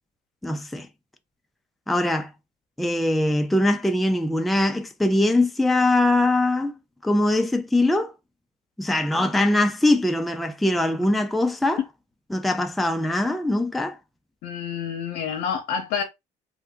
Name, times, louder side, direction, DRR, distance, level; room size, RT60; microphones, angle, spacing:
voice 1, 0.4-0.9 1.9-2.3 2.8-6.7 7.0-8.1 8.8-11.8 12.3-14.0, left 1 dB, ahead, 0.3 m, -22 dB
voice 2, 14.4-16.0, left 7 dB, 85° left, 0.6 m, -28 dB
2.6 x 2.1 x 3.4 m
cardioid pair, 110°, 17 cm